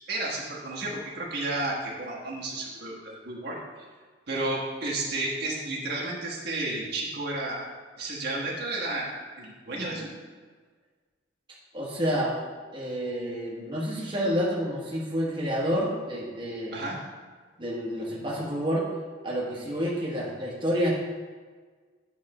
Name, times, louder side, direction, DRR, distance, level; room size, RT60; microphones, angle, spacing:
voice 1, 0.1-3.6 4.3-7.6 8.0-9.1 9.4-10.1 16.7-17.0, right 2 dB, 60° right, -4 dB, 1.3 m, -32 dB
voice 2, 11.7-12.4 12.7-16.8 17.6-18.9 19.2-20.9, equal, 25° right, -5 dB, 1.3 m, -29 dB
8.7 x 3.6 x 4.8 m, 1.5 s
head